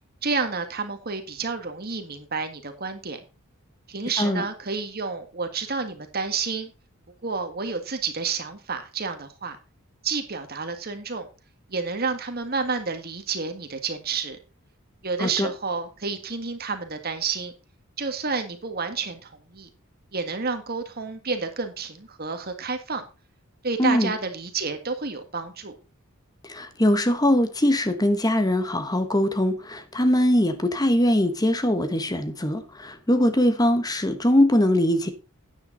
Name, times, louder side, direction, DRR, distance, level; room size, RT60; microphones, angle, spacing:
voice 1, 0.2-3.2 3.9-6.7 7.2-9.6 10.0-11.3 11.7-14.4 15.0-17.5 18.0-19.7 20.1-23.0 23.6-25.8, right 4 dB, 45° right, 1.8 m, -30 dB
voice 2, 15.2-15.5 23.8-24.1 26.4-35.1, left 1 dB, 20° left, 1.2 m, -22 dB
9.8 x 9.5 x 3.9 m
head